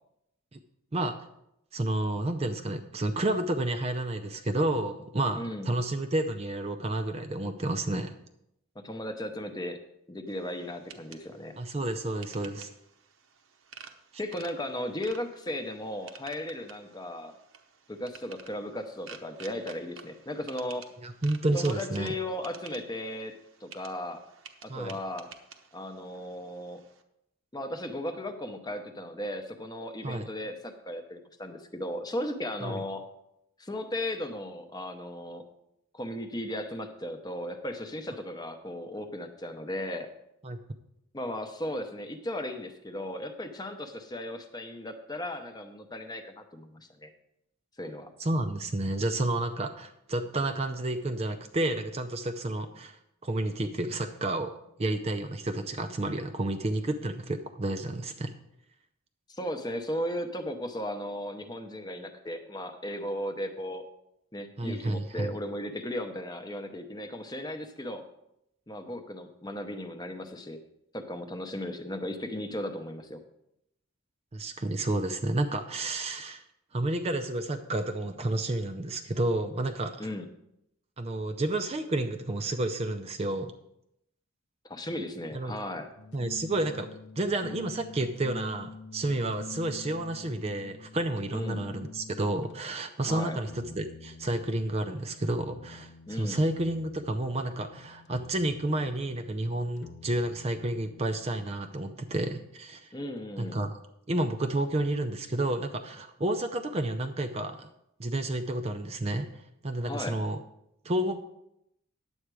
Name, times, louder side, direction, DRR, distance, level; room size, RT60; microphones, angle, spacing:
voice 1, 1.7-8.1 11.6-12.7 21.0-22.1 24.7-25.0 30.0-30.3 32.6-32.8 40.4-40.6 48.2-54.5 54.8-58.3 64.6-65.3 74.3-76.4 76.7-80.1 81.0-83.5 85.3-85.5 86.1-86.9 87.2-102.9 103.4-103.7 104.1-107.7 108.0-110.4 110.8-111.2, right 1 dB, 30° right, 7 dB, 0.5 m, -30 dB
voice 2, 5.4-5.7 8.7-9.8 10.1-11.6 14.2-17.3 17.9-20.9 21.5-23.4 23.6-24.2 24.6-25.3 25.7-26.8 27.5-33.0 33.6-35.4 35.9-40.1 41.1-47.1 47.8-48.1 59.3-63.8 64.3-68.0 68.7-70.6 70.9-73.2 80.0-80.3 84.6-85.9 91.3-91.7 93.0-93.4 96.1-96.4 102.9-103.6 109.8-110.2, left 1 dB, 20° left, 6 dB, 0.8 m, -36 dB
sound 1, 10.3-27.0, right 6 dB, 65° right, 0.9 m, -52 dB
sound 2, 86.0-92.6 93.5-101.5, left 4 dB, 50° left, 0.4 m, -47 dB
10.0 x 7.9 x 4.7 m, 0.81 s
head